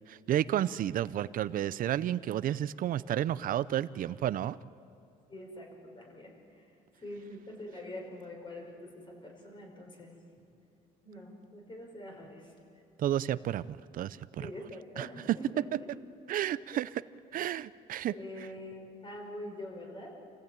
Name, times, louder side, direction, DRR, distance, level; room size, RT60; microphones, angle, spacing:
voice 1, 0.1-4.6 13.0-14.5 15.0-15.4 16.3-17.0 17.3-18.5, right 11 dB, 55° right, 17 dB, 0.6 m, -31 dB
voice 2, 5.3-5.7 6.0-6.6 7.0-10.1 11.0-12.5 14.4-15.9 16.7-16.8 18.1-20.2, left 1 dB, 30° left, 1 dB, 5.6 m, -45 dB
28.0 x 15.5 x 8.9 m, 2.5 s
cardioid pair, 110°, 17 cm